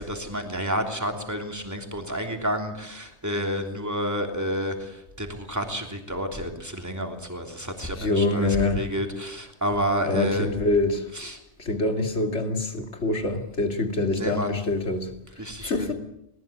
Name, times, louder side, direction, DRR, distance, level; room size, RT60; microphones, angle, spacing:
voice 1, 0.0-4.7 5.2-10.5 11.1-11.4 14.1-14.6 15.4-15.9, equal, 15° right, 3.2 m, -30 dB
voice 2, 8.0-8.9 10.1-11.0 11.7-15.1 15.6-15.9, left 2 dB, 80° left, 2.8 m, -25 dB
20.5 x 19.0 x 8.7 m
omnidirectional pair, 1.2 m